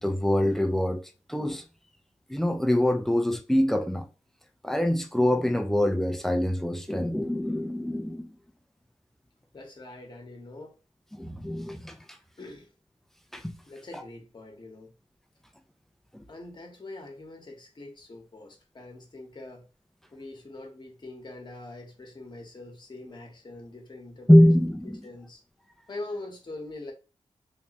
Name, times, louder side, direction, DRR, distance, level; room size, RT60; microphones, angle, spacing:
voice 1, 0.0-1.6 2.3-4.1 4.6-8.4 11.1-12.0 13.3-13.6 13.9-14.0 16.1-16.2 24.3-25.0, left 1 dB, 5° left, 0.6 m, -24 dB
voice 2, 9.5-10.8 12.4-12.7 13.7-14.9 16.3-19.7 20.1-24.5 25.0-25.4 25.9-26.9, left 2 dB, 40° left, 1.2 m, -43 dB
3.4 x 3.1 x 2.9 m
cardioid pair, 75°, 12 cm